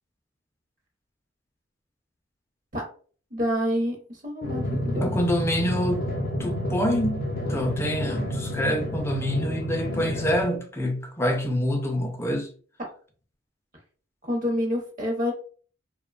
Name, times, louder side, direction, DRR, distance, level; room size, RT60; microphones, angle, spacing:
voice 1, 3.3-5.1 14.2-15.3, equal, 45° right, 0.8 m, -27 dB
Drum, 4.4-10.4, left 1 dB, 50° left, 0.7 m, -29 dB
voice 2, 5.0-6.1 6.4-12.5, equal, 15° left, 0.4 m, -26 dB
2.8 x 2.2 x 2.3 m
head